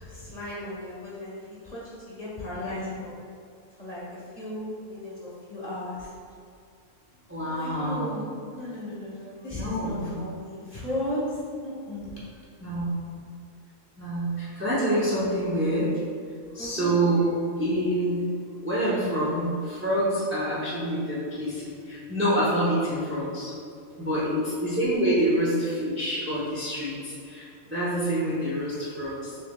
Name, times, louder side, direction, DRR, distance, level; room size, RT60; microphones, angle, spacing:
voice 1, 0.0-3.2 3.8-4.0 4.3-6.1 7.4-8.2 8.5-12.2 16.6-17.0, left 1 dB, 30° left, -8 dB, 1.1 m, -35 dB
voice 2, 2.5-2.9 7.3-8.2 9.5-10.2 12.6-13.1 14.0-15.9 16.5-17.3 17.6-18.3 18.6-23.5 24.0-29.4, right 1 dB, 15° right, -8 dB, 0.4 m, -27 dB
6.6 x 3.1 x 2.2 m, 2.3 s
omnidirectional pair, 1.5 m